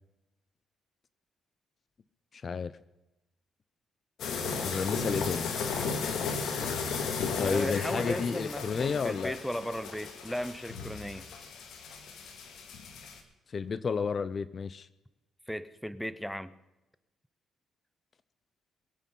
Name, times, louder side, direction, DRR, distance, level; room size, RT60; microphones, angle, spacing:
voice 1, 2.3-2.7 4.5-5.5 7.4-9.4 13.5-14.9, left 5 dB, 45° left, 17 dB, 0.6 m, -31 dB
sound 1, 4.2-13.2, left 5 dB, 75° left, 2.2 m, -35 dB
voice 2, 7.4-11.3 15.5-16.5, equal, ahead, 15 dB, 0.8 m, -36 dB
23.0 x 8.4 x 5.4 m, 0.98 s
cardioid pair, 90°, 0 cm